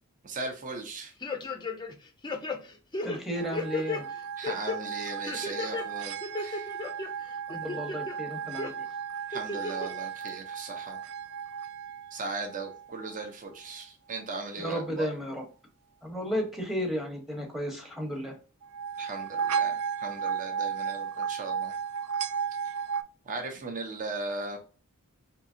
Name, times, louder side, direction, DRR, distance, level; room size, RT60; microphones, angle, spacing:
voice 1, 0.2-1.1 4.4-6.7 9.3-11.0 12.1-15.1 19.0-21.8 23.2-24.6, right 3 dB, 35° right, 0.7 m, -38 dB
sound 1, 1.2-1.9 2.2-4.0 4.4-4.8 5.3-5.8 6.2-7.1 7.5-8.1 8.6-8.7 9.3-9.9 10.3-10.4, left 3 dB, 20° left, 0.5 m, -34 dB
voice 2, 3.0-4.1 7.5-8.9 14.6-15.4 16.0-18.4, equal, ahead, 0.9 m, -33 dB
sound 2, 3.4-13.2 18.6-23.0, right 7 dB, 65° right, 0.3 m, -35 dB
4.5 x 2.8 x 2.6 m
head